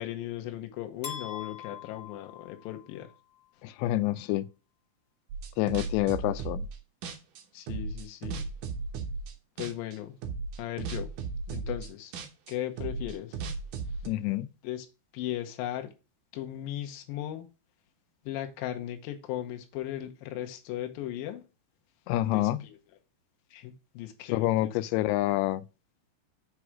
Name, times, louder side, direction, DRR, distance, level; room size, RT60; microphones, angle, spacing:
voice 1, 0.0-3.1 7.5-8.4 9.6-10.2 10.6-11.1 11.5-12.1 12.5-13.4 14.6-14.9 15.1-15.9 16.3-17.5 18.3-21.4 22.2-22.7 23.5-24.7, left 12 dB, 75° left, 2.4 m, -37 dB
sound 1, 1.0-3.2, left 9 dB, 35° left, 2.0 m, -42 dB
voice 2, 3.6-4.5 5.6-6.7 14.1-14.5 22.1-22.6 24.3-25.6, left 16 dB, 90° left, 2.8 m, -27 dB
sound 2, 5.3-6.8 7.0-9.3 9.6-10.0 10.2-14.1, right 4 dB, 80° right, 1.8 m, -36 dB
6.2 x 4.9 x 5.9 m
omnidirectional pair, 5.0 m